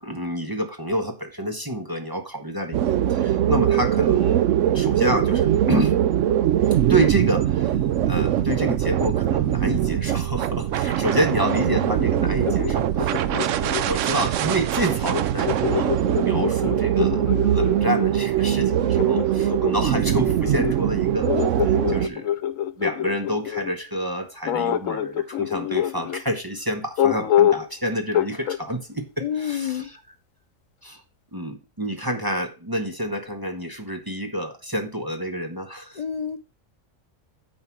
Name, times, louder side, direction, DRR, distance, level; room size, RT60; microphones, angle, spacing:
voice 1, 0.0-4.4 4.7-6.0 6.9-7.7 8.1-21.3 21.6-22.4 22.8-30.0 30.8-31.0 31.3-36.0, equal, 20° right, 5 dB, 0.8 m, -28 dB
sound 1, 2.7-22.1, right 11 dB, 75° right, 0.9 m, -22 dB
voice 2, 11.5-11.9 29.2-29.9 36.0-36.4, left 8 dB, 45° left, 8 dB, 0.5 m, -29 dB
sound 2, 11.9-14.3 15.1-18.1 19.0-23.7 24.5-26.2 27.0-27.7 28.1-28.6, left 11 dB, 85° left, 1.1 m, -26 dB
9.2 x 4.5 x 6.0 m, 0.33 s
omnidirectional pair, 1.4 m